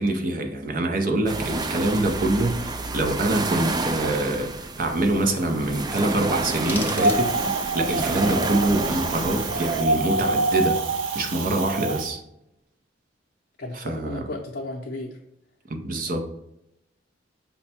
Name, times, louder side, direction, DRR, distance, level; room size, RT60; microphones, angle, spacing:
voice 1, 0.0-10.8 11.1-12.2 13.7-14.2 15.7-16.3, right 2 dB, 50° right, 0.7 m, -25 dB
sound 1, 1.3-9.8, right 3 dB, 20° right, 0.3 m, -29 dB
sound 2, 6.5-7.7, left 2 dB, 10° left, 0.8 m, -37 dB
Wind, 7.0-12.1, right 2 dB, 90° right, 0.5 m, -26 dB
voice 2, 13.6-15.2, left 2 dB, 55° left, 0.6 m, -34 dB
5.6 x 2.2 x 4.1 m
head